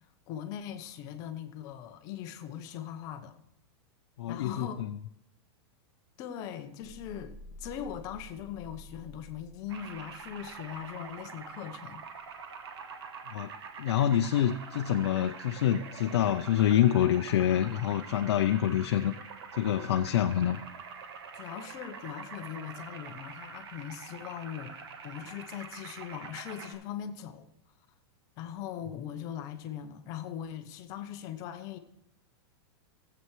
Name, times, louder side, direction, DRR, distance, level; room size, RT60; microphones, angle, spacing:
voice 1, 0.3-3.4 4.3-4.9 6.2-12.0 21.3-24.7 25.0-27.5 28.4-31.8, left 9 dB, 25° left, 0.6 m, -40 dB
voice 2, 4.2-4.7 13.3-13.5 13.8-19.1 19.5-20.6, left 11 dB, 80° left, 0.5 m, -26 dB
sound 1, 6.8-11.4, left 1 dB, ahead, 1.3 m, -51 dB
sound 2, 9.7-26.7, right 5 dB, 75° right, 1.3 m, -45 dB
16.0 x 7.8 x 3.1 m
supercardioid pair, 175°, 14 cm